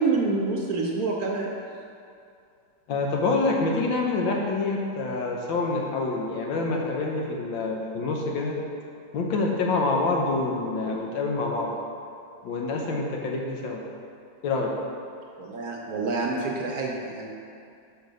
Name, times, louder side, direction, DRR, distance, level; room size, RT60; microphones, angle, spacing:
voice 1, 0.0-1.5 15.4-17.3, right 3 dB, 65° right, -1 dB, 1.1 m, -27 dB
voice 2, 2.9-8.6 9.1-11.7 12.4-13.8 14.4-14.7, left 3 dB, 85° left, 0 dB, 1.6 m, -26 dB
6.2 x 5.4 x 5.1 m, 2.5 s
omnidirectional pair, 2.1 m